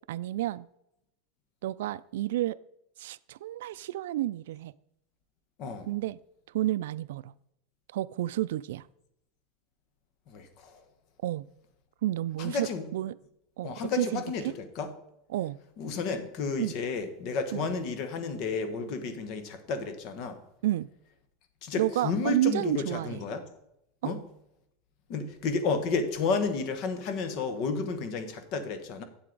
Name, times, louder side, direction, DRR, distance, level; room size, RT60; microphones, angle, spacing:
voice 1, 0.1-0.7 1.6-2.6 3.0-4.7 5.9-6.2 6.5-7.3 7.9-8.9 11.2-11.5 12.0-13.2 13.6-14.5 15.3-15.6 16.6-16.7 17.5-17.7 20.6-20.9 21.8-23.2 24.0-24.1, right 14 dB, 80° right, 18 dB, 0.3 m, -30 dB
voice 2, 10.3-10.8 12.4-12.8 13.6-14.9 15.8-20.4 21.6-23.4 24.0-24.2 25.1-29.0, left 4 dB, 40° left, 9 dB, 1.1 m, -32 dB
8.4 x 7.7 x 3.9 m, 0.81 s
supercardioid pair, 170°, 0 cm